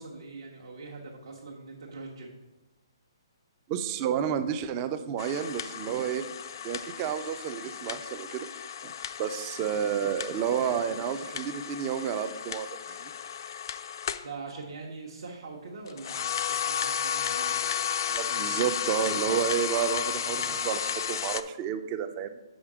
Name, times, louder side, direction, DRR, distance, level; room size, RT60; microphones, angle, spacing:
voice 1, 0.0-2.3 14.2-17.6, right 3 dB, 70° right, -2 dB, 1.0 m, -42 dB
voice 2, 3.7-6.3 6.6-8.5 8.8-8.9 9.2-13.1 18.1-22.4, right 8 dB, 25° right, 9 dB, 0.4 m, -30 dB
sound 1, 5.2-14.3 15.9-21.4, left 8 dB, 55° left, 0.3 m, -33 dB
5.5 x 5.0 x 4.8 m, 1.1 s
hypercardioid pair, 155°, 3 cm